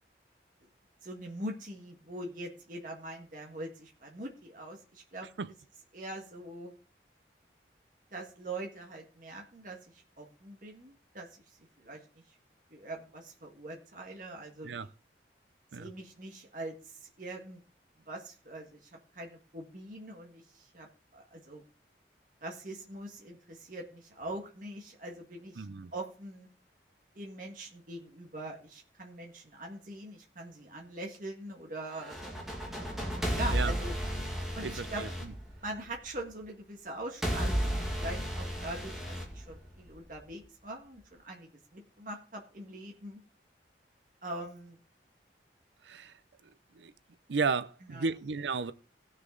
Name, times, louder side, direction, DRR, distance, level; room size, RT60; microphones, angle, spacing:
voice 1, 1.0-5.3 5.9-6.7 8.1-11.3 11.8-12.0 12.7-14.8 15.7-17.6 18.1-20.9 21.1-21.6 22.4-25.7 25.9-26.5 27.2-32.2 33.3-34.0 34.6-35.0 35.6-43.2 44.2-44.8 47.9-48.1, right 1 dB, 45° right, 1.7 m, -42 dB
voice 2, 25.6-25.9 33.5-33.7 34.6-35.3 45.8-46.1 46.8-46.9 47.3-48.7, right 4 dB, 85° right, 0.6 m, -33 dB
sound 1, 31.9-36.1 37.2-40.1, equal, ahead, 2.1 m, -34 dB
17.0 x 6.5 x 3.8 m
head